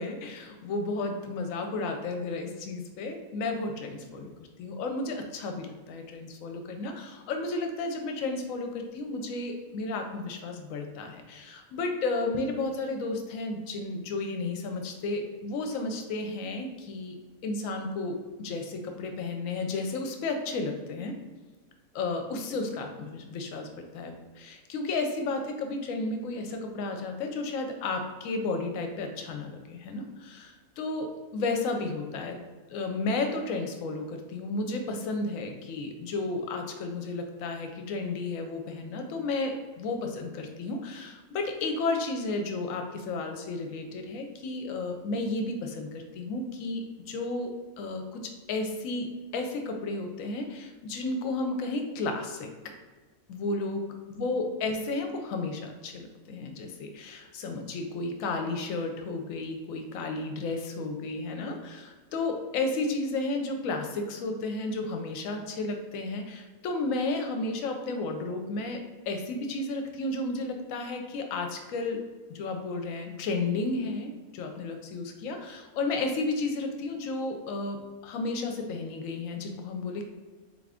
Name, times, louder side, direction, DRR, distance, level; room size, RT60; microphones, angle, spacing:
voice 1, 0.0-4.3 4.6-17.2 17.4-21.1 21.9-32.4 32.7-52.5 53.3-53.8 54.1-68.8 69.1-72.0 72.3-80.1, left 3 dB, 70° left, 4 dB, 0.9 m, -33 dB
3.8 x 2.4 x 3.4 m, 1.3 s
omnidirectional pair, 1.5 m